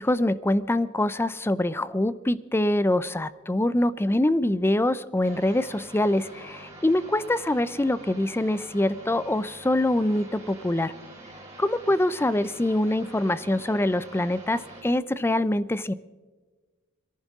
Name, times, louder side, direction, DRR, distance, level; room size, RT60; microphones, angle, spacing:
voice 1, 0.0-10.9 11.6-15.9, left 1 dB, 10° left, 16 dB, 0.5 m, -24 dB
sound 1, 5.2-14.8, right 1 dB, 15° right, 4.9 m, -46 dB
22.5 x 14.5 x 3.6 m, 1.3 s
head